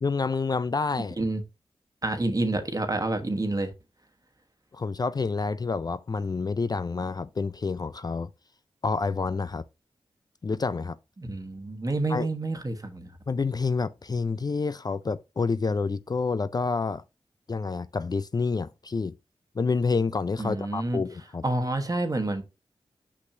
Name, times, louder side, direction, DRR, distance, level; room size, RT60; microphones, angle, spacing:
voice 1, 0.0-1.2 4.7-8.3 8.8-9.6 10.4-11.0 12.1-12.3 13.3-17.0 17.5-19.1 19.6-21.4, left 4 dB, 40° left, 0.4 m, -28 dB
voice 2, 2.0-3.7 11.2-13.1 20.4-21.0 21.4-22.4, right 2 dB, 35° right, 1.2 m, -28 dB
6.1 x 5.7 x 2.7 m
cardioid pair, 45°, 10 cm